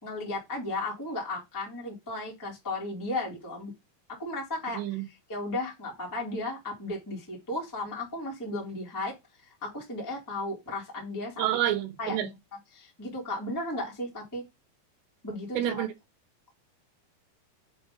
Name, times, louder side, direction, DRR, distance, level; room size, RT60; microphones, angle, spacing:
voice 1, 0.0-3.7 4.1-9.2 9.4-11.4 12.0-12.3 12.7-14.4 15.2-15.8, left 2 dB, 15° left, 0.7 m, -35 dB
voice 2, 4.7-5.0 11.4-12.3 15.5-15.9, right 13 dB, 85° right, 3.2 m, -28 dB
6.9 x 2.7 x 5.1 m
omnidirectional pair, 4.9 m